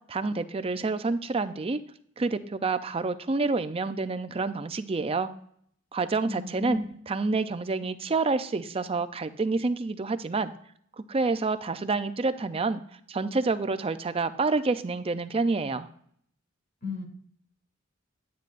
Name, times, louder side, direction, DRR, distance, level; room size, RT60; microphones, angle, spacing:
voice 1, 0.1-1.8 2.2-5.3 5.9-6.8 7.1-10.5 11.0-12.8 13.1-15.9, right 3 dB, 30° right, 11 dB, 0.5 m, -28 dB
voice 2, 6.2-6.9 16.8-17.0, left 3 dB, 50° left, 2 dB, 2.3 m, -34 dB
10.5 x 9.5 x 2.5 m, 0.64 s
head